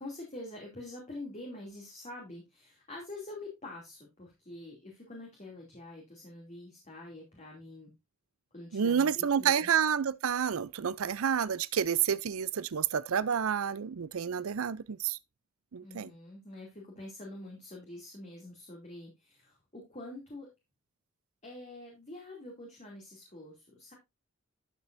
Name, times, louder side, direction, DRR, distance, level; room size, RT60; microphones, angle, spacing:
voice 1, 0.0-7.9 8.5-9.7 15.8-20.5 21.4-23.9, left 2 dB, 35° left, 2.8 m, -46 dB
voice 2, 8.7-15.2 15.7-16.1, right 7 dB, 80° right, 0.5 m, -29 dB
12.0 x 7.4 x 2.6 m
head